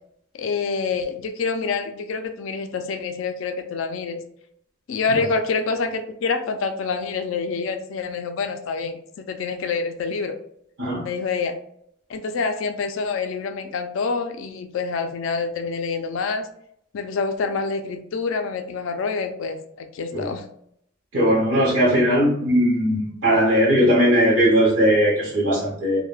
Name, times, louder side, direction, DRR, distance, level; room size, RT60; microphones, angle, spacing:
voice 1, 0.3-4.2 4.9-10.4 11.0-11.6 12.1-16.5 16.9-20.4, left 4 dB, 80° left, 6 dB, 0.4 m, -27 dB
voice 2, 21.1-26.1, equal, 75° right, -5 dB, 0.7 m, -19 dB
2.2 x 2.1 x 3.1 m, 0.71 s
head